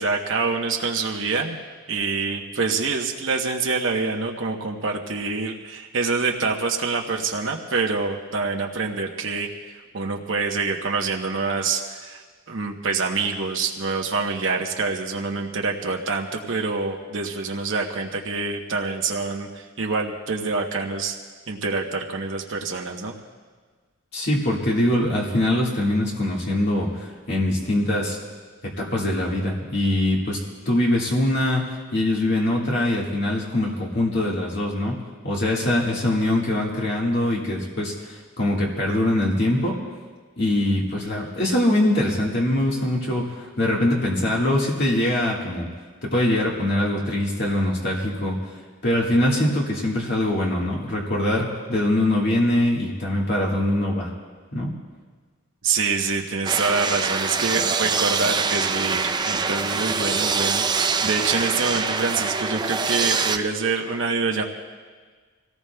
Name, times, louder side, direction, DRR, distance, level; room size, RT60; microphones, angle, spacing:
voice 1, 0.0-1.6 1.9-12.2 12.5-21.2 21.5-23.1 55.6-64.4, right 4 dB, 65° right, 1 dB, 1.0 m, -26 dB
voice 2, 24.1-28.2 28.6-30.4 30.7-35.0 35.2-39.8 40.4-45.7 46.0-48.4 48.8-54.1 54.5-54.7, left 1 dB, 55° left, -3 dB, 1.8 m, -23 dB
sound 1, 56.5-63.4, right 5 dB, 20° right, 0.5 m, -24 dB
25.5 x 17.5 x 2.3 m, 1.5 s
head